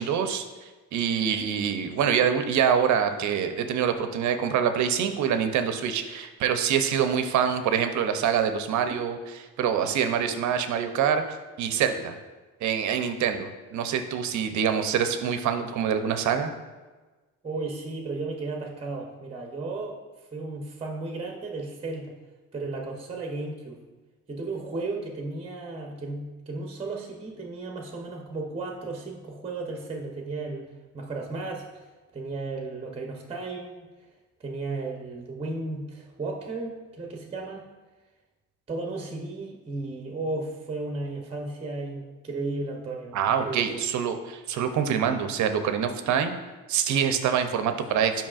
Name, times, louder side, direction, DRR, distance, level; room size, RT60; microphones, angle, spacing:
voice 1, 0.0-12.2 12.6-16.5 43.1-46.3 46.7-48.1, right 8 dB, 60° right, 8 dB, 0.6 m, -25 dB
voice 2, 17.4-20.0 20.3-22.1 22.5-23.8 24.3-31.8 32.1-33.9 34.4-37.7 38.7-43.8, right 3 dB, 20° right, 1 dB, 0.8 m, -34 dB
7.3 x 5.3 x 2.4 m, 1.3 s
cardioid pair, 95°, 33 cm